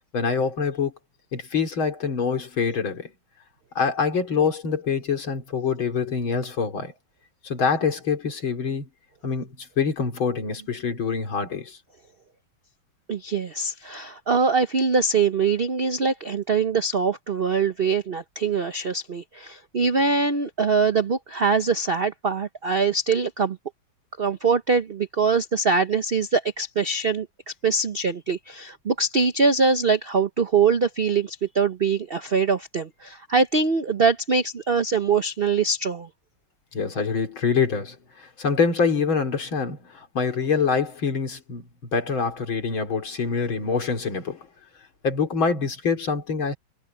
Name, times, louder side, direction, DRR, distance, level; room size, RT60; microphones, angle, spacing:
voice 1, 0.1-0.9 1.3-3.1 3.8-6.9 7.4-8.9 9.2-11.8 36.7-44.5 45.0-46.6, left 5 dB, 70° left, 3.8 m, -25 dB
voice 2, 13.1-23.6 24.2-27.3 27.6-36.1, right 4 dB, 60° right, 0.6 m, -23 dB
omnidirectional pair, 2.2 m